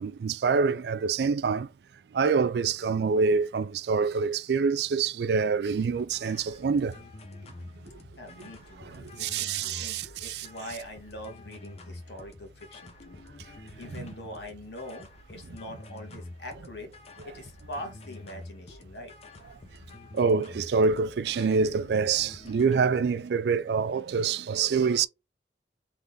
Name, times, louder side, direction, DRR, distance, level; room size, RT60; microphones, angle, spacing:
voice 1, 0.0-1.7 2.1-7.0 8.9-10.5 14.0-14.1 20.1-25.1, right 5 dB, 65° right, 0.3 m, -26 dB
sound 1, 5.7-23.0, left 2 dB, 35° left, 0.7 m, -47 dB
voice 2, 8.2-13.2 13.8-16.9 17.2-19.1, left 1 dB, 70° left, 1.4 m, -43 dB
3.8 x 3.3 x 3.4 m
head